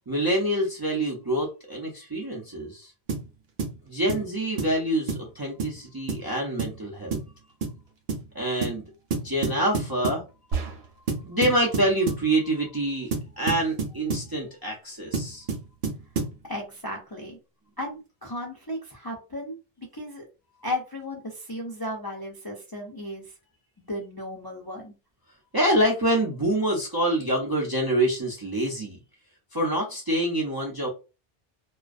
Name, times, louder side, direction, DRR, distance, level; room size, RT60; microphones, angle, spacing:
voice 1, 0.1-2.9 3.9-7.2 8.3-8.9 9.2-10.2 11.2-13.1 13.4-15.5 25.5-29.0 29.5-30.9, right 1 dB, 35° right, -2 dB, 0.3 m, -26 dB
sound 1, 3.1-3.3 3.6-3.8 4.1-4.3 4.6-4.8 5.1-5.3 5.6-5.8 6.1-6.3 6.6-6.8 7.1-7.3 7.6-7.8 8.1-8.3 8.6-8.8 9.1-10.3 11.1-12.3 13.1-14.3 15.1-16.4, right 4 dB, 60° right, 0.7 m, -29 dB
sound 2, 10.5-11.2, right 4 dB, 90° right, 0.9 m, -31 dB
voice 2, 16.4-17.4 17.8-20.2 20.6-23.3 23.8-24.9, left 1 dB, 35° left, -1 dB, 0.3 m, -35 dB
2.4 x 2.2 x 2.4 m, 0.31 s
omnidirectional pair, 1.1 m